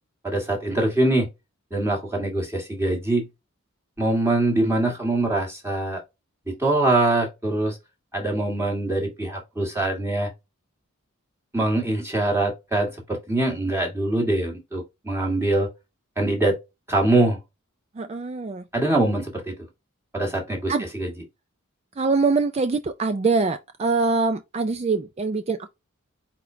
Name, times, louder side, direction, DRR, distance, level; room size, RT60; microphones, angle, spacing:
voice 1, 0.2-1.3 1.7-3.2 4.0-6.0 6.5-7.8 8.1-10.3 11.5-15.7 16.2-16.6 16.9-17.4 18.7-19.5 20.1-21.1, right 2 dB, 10° right, 1.5 m, -23 dB
voice 2, 18.0-18.6 20.7-20.9 22.0-25.7, right 4 dB, 30° right, 0.3 m, -24 dB
4.5 x 4.1 x 2.7 m
head